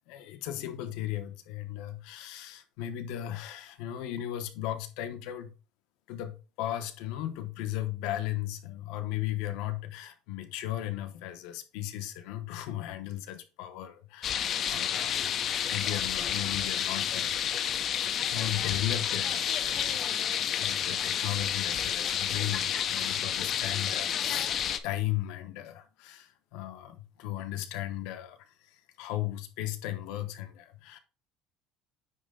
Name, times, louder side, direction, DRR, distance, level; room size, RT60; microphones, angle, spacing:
voice 1, 0.1-5.5 6.1-15.3 15.6-17.3 18.3-24.5 24.8-31.0, left 13 dB, 70° left, 0.9 m, -36 dB
sound 1, 14.2-24.8, left 9 dB, 35° left, 0.5 m, -30 dB
9.4 x 3.3 x 3.7 m
cardioid pair, 170°, 0 cm